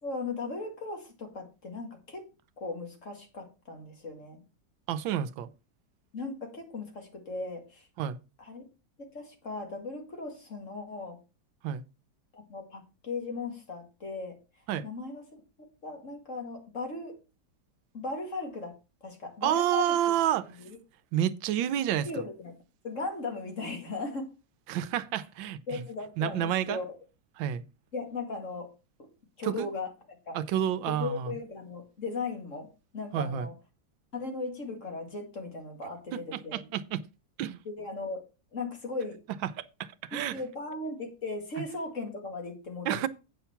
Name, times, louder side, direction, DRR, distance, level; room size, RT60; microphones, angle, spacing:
voice 1, 0.0-2.3 2.6-4.4 6.1-7.9 8.4-8.6 9.0-11.2 12.3-14.4 14.8-15.2 15.8-17.2 17.9-18.7 19.0-20.0 20.6-20.8 22.0-22.5 22.8-24.3 25.7-26.9 27.9-28.7 29.0-29.1 29.4-30.4 30.9-32.7 32.9-33.5 34.1-36.7 37.7-38.2 38.5-39.2 40.1-43.1, left 3 dB, 40° left, 2.4 m, -37 dB
voice 2, 4.9-5.5 8.0-8.2 11.6-11.8 14.7-14.9 19.4-20.5 21.1-22.1 24.7-25.8 26.2-26.8 27.4-27.6 29.4-29.7 30.3-31.4 33.1-33.5 35.8-37.0 37.4-37.6 39.4-40.4 42.8-43.1, right 10 dB, 85° right, 1.4 m, -29 dB
8.5 x 5.7 x 5.7 m
omnidirectional pair, 2.0 m